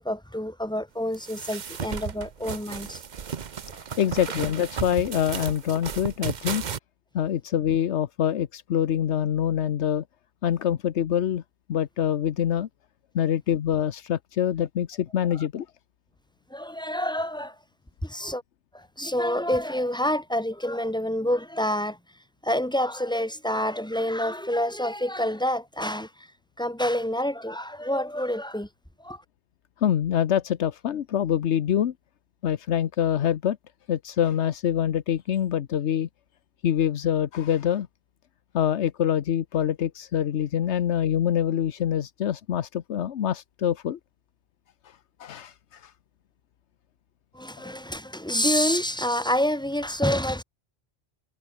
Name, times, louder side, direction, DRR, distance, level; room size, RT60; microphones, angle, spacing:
voice 1, 0.0-3.0 16.5-17.5 18.0-18.4 18.7-22.0 22.4-26.3 26.6-28.7 29.0-29.2 47.3-50.4, left 1 dB, 5° left, 1.4 m, -27 dB
sound 1, 1.1-6.8, right 7 dB, 45° right, 0.9 m, -34 dB
voice 2, 3.7-6.6 7.1-10.0 10.4-11.4 11.7-12.7 13.1-15.7 29.8-31.9 32.4-33.6 33.9-36.1 36.6-37.9 38.5-44.0 44.8-45.9 47.6-47.7, left 9 dB, 85° left, 1.1 m, -25 dB
omnidirectional pair, 1.1 m